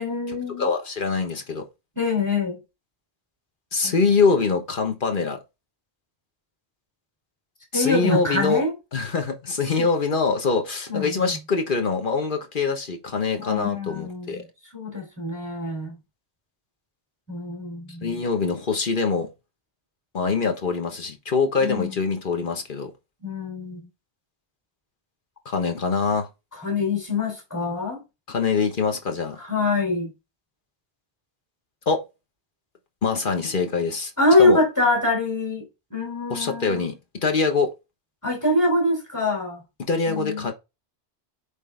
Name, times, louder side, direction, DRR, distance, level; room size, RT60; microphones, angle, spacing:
voice 1, 0.0-0.7 1.9-2.6 3.8-4.2 7.7-8.7 9.7-9.9 10.9-11.4 13.4-14.4 14.7-16.0 17.3-18.2 21.6-22.1 23.2-23.9 26.5-28.0 29.3-30.1 34.2-36.9 38.2-39.6 40.0-40.5, left 2 dB, 15° left, 3.2 m, -24 dB
voice 2, 0.6-1.6 3.7-5.4 7.7-8.6 8.9-14.4 18.0-19.3 20.1-22.9 25.4-26.3 28.3-29.4 31.9-32.0 33.0-34.1 34.4-34.6 36.3-37.7 39.9-40.5, left 4 dB, 50° left, 1.3 m, -24 dB
8.1 x 3.7 x 3.4 m
omnidirectional pair, 1.2 m